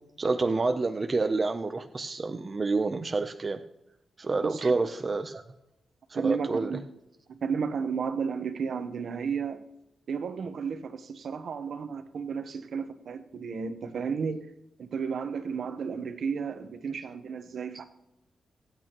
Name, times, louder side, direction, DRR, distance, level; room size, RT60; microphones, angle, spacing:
voice 1, 0.2-3.6 4.2-5.4 6.1-6.7, right 3 dB, 30° right, 7 dB, 0.6 m, -28 dB
voice 2, 4.4-4.8 6.1-6.8 7.3-9.7 10.1-14.5 14.8-17.8, right 6 dB, 65° right, 9 dB, 1.0 m, -33 dB
24.5 x 8.5 x 3.0 m, 0.87 s
wide cardioid pair, 150°, 0 cm